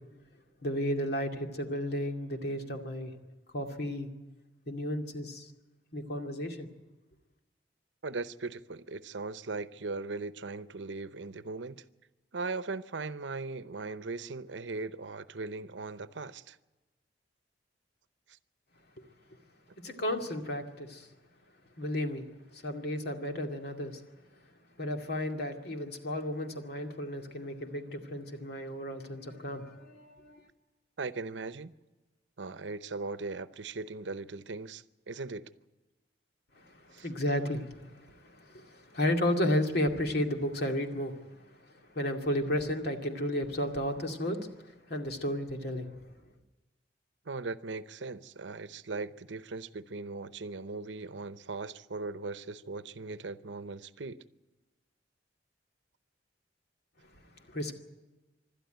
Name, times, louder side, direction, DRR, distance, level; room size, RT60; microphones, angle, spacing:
voice 1, 0.6-3.1 3.5-4.1 4.7-5.5 5.9-6.7 19.8-21.1 21.8-22.3 22.5-24.0 24.8-30.4 36.6-41.2 41.9-45.9 57.5-57.7, left 1 dB, 65° left, 2.4 m, -33 dB
voice 2, 8.0-11.8 12.3-16.6 31.0-31.8 32.4-35.5 36.9-37.1 47.3-54.2, right 3 dB, 85° right, 0.8 m, -39 dB
26.0 x 12.5 x 9.2 m
head